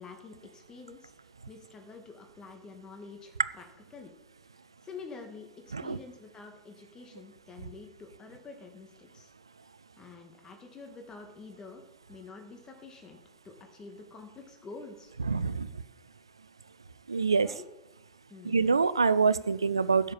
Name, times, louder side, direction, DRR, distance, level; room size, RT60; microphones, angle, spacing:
voice 1, 0.0-3.6 3.9-4.1 4.8-9.3 10.0-11.8 12.1-13.2 13.4-15.1 17.4-17.6 18.3-18.6, left 4 dB, 25° left, 4 dB, 2.1 m, -47 dB
voice 2, 15.3-15.7 17.1-17.5 18.4-20.1, right 5 dB, 90° right, 17 dB, 0.4 m, -25 dB
10.5 x 6.6 x 7.5 m, 0.98 s
hypercardioid pair, 85°, 2 cm